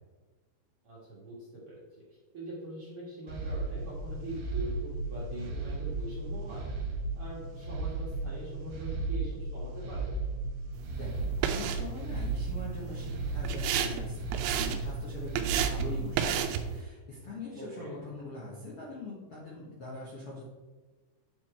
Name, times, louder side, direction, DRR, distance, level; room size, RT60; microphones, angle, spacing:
voice 1, 0.8-1.4 1.7-1.8 2.3-6.7 7.2-10.1 17.6-18.0, right 2 dB, 50° right, -7 dB, 1.8 m, -42 dB
sound 1, 3.3-16.4, right 3 dB, 65° right, 2.6 m, -35 dB
sound 2, 10.7-16.8, right 8 dB, 80° right, 2.4 m, -34 dB
voice 2, 10.8-20.4, left 2 dB, 90° left, -6 dB, 1.2 m, -42 dB
8.6 x 4.7 x 4.3 m, 1.3 s
omnidirectional pair, 5.0 m